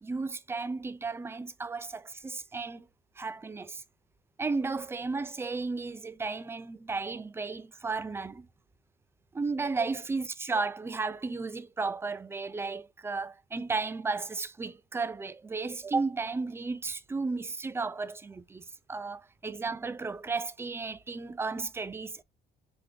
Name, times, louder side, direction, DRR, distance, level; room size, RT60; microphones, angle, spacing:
voice 1, 0.0-2.9 3.2-3.8 4.4-8.5 9.3-18.6 18.9-22.2, right 4 dB, 15° right, 0.4 m, -34 dB
3.5 x 3.5 x 3.3 m
cardioid pair, 110°, 17 cm